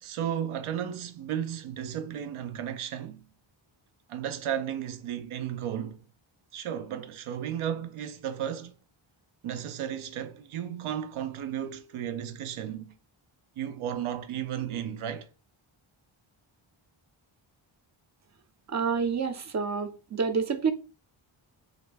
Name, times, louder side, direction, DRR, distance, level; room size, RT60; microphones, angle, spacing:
voice 1, 0.0-3.2 4.1-6.0 6.5-8.7 9.4-12.9 13.6-15.3, right 9 dB, 85° right, 0.6 m, -34 dB
voice 2, 18.7-20.7, right 5 dB, 35° right, 0.5 m, -28 dB
3.1 x 2.6 x 3.2 m
wide cardioid pair, 110°, 49 cm